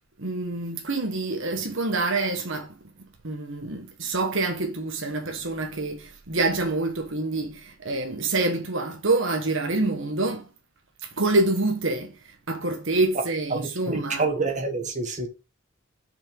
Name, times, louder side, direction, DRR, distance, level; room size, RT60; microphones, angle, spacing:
voice 1, 0.2-2.8 3.2-10.5 11.0-14.3, right 2 dB, 70° right, 1.3 m, -26 dB
voice 2, 13.5-15.3, right 3 dB, 35° right, 1.7 m, -28 dB
6.1 x 5.4 x 5.2 m
head